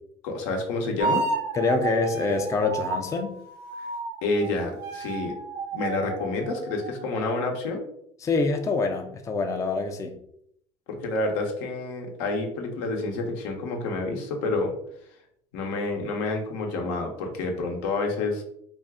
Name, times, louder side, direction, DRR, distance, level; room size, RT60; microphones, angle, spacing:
voice 1, 0.2-1.3 3.8-3.9 4.2-5.3 5.7-7.8 10.9-14.7 15.5-18.4, left 3 dB, 85° left, 0.8 m, -28 dB
sound 1, 1.0-4.5 4.8-7.2, right 4 dB, 70° right, 0.8 m, -32 dB
voice 2, 1.5-3.4 8.2-10.2, left 4 dB, 20° left, 0.4 m, -25 dB
2.5 x 2.4 x 3.4 m
supercardioid pair, 95°, 15 cm